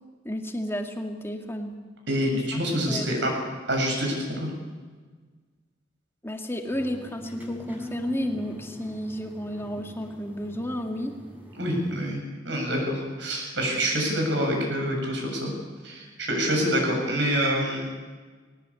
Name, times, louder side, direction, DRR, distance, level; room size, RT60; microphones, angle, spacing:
voice 1, 0.2-1.8 2.5-2.6 2.9-3.1 6.2-11.2, equal, 15° left, 4 dB, 2.0 m, -32 dB
voice 2, 2.1-3.3 3.7-4.5 11.6-15.5 15.8-17.9, equal, 65° right, 1 dB, 7.1 m, -26 dB
sound 1, 6.7-12.1, left 1 dB, 10° right, 3.9 m, -41 dB
20.0 x 18.5 x 8.5 m, 1.5 s
head